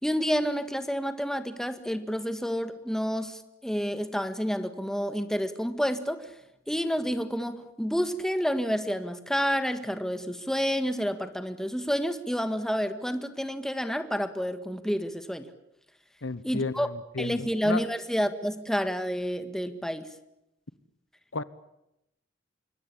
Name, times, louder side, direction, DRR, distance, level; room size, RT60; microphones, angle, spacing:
voice 1, 0.0-6.3 6.7-15.5 16.4-16.9 17.2-20.1, equal, 5° left, 9 dB, 1.7 m, -29 dB
voice 2, 16.2-17.8 21.3-21.4, left 3 dB, 80° left, 16 dB, 1.1 m, -33 dB
26.5 x 23.5 x 8.5 m, 0.85 s
head